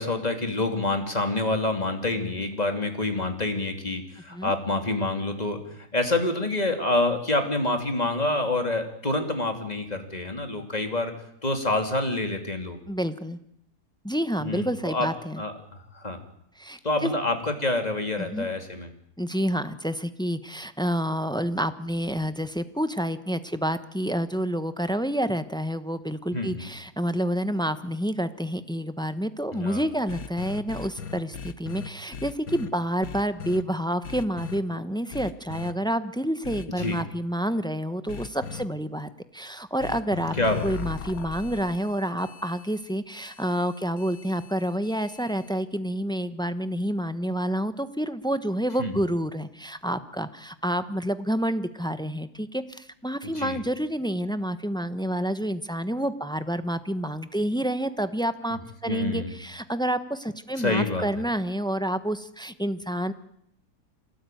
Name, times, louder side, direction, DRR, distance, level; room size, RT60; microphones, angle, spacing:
voice 1, 0.0-5.6 5.9-11.1 11.4-12.8 14.4-15.1 15.4-15.5 15.9-16.2 16.8-18.9 26.3-26.7 29.5-29.8 36.8-37.0 40.4-40.7 48.8-48.9 53.2-53.6 58.9-59.3 60.6-61.1, left 2 dB, 25° left, 5 dB, 3.2 m, -27 dB
voice 2, 12.9-13.4 14.0-15.4 16.6-17.1 18.2-18.5 19.2-40.3 40.6-63.1, equal, 5° left, 12 dB, 0.9 m, -28 dB
sound 1, 30.1-32.7 33.0-33.6 34.0-34.6 35.1-35.7 36.4-37.0 38.1-38.6 39.8-45.6, left 6 dB, 65° left, 1.7 m, -38 dB
27.0 x 18.0 x 9.3 m, 0.75 s
omnidirectional pair, 1.7 m